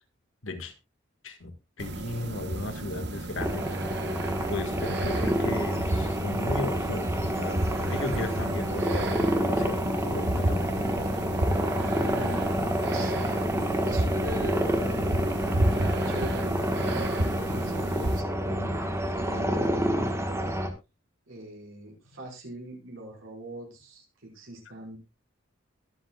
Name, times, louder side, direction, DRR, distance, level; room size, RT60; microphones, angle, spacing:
voice 1, 0.4-0.7 1.2-1.5 1.8-3.7 4.5-7.6 7.9-10.7 18.5-18.7, left 2 dB, 70° left, 6 dB, 1.8 m, -35 dB
sound 1, 1.8-18.2, right 1 dB, 60° right, 1.1 m, -32 dB
sound 2, 3.4-20.7, equal, 15° right, 1.5 m, -28 dB
voice 2, 11.9-12.4 12.8-13.1 13.8-15.5 16.0-16.6 17.3-20.5 21.3-25.0, right 1 dB, 80° right, -2 dB, 5.5 m, -41 dB
22.5 x 7.6 x 2.4 m, 0.25 s
head